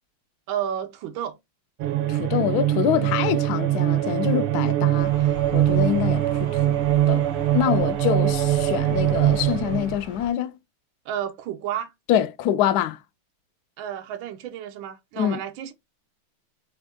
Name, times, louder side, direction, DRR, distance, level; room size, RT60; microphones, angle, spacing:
voice 1, 0.5-1.3 11.0-11.9 13.8-15.7, right 10 dB, 70° right, 1.4 m, -31 dB
sound 1, 1.8-10.0, right 13 dB, 90° right, 1.6 m, -22 dB
voice 2, 2.1-5.1 5.5-6.8 7.1-7.3 7.5-10.5 12.1-13.0 15.2-15.4, left 10 dB, 85° left, 0.9 m, -25 dB
sound 2, 5.0-10.3, left 3 dB, 30° left, 1.1 m, -40 dB
4.3 x 3.5 x 3.4 m
omnidirectional pair, 2.4 m